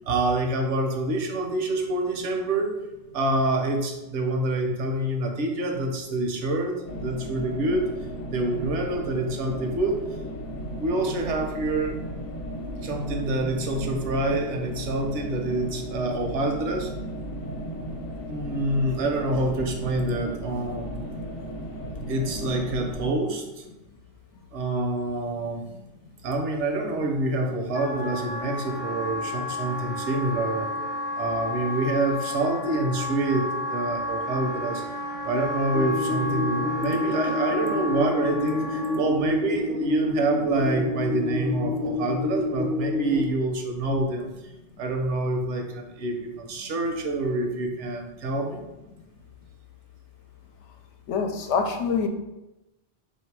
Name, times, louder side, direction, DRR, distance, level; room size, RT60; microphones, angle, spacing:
voice 1, 0.1-2.7 3.1-7.9 8.3-10.0 10.8-12.0 12.8-16.9 18.3-21.1 22.1-23.6 24.5-25.6 26.2-30.7 31.2-34.8 35.2-44.3 44.8-48.6, right 2 dB, 85° right, 3 dB, 1.0 m, -27 dB
sound 1, 6.9-23.1, equal, 60° left, 0.9 m, -35 dB
Wind instrument woodwind instrument, 27.7-39.0, left 1 dB, 15° left, 0.4 m, -32 dB
sound 2, 35.7-43.2, left 2 dB, 55° right, 0.5 m, -28 dB
voice 2, 51.1-52.1, left 5 dB, 90° left, 5 dB, 0.9 m, -25 dB
3.2 x 2.7 x 4.6 m, 0.98 s
omnidirectional pair, 1.2 m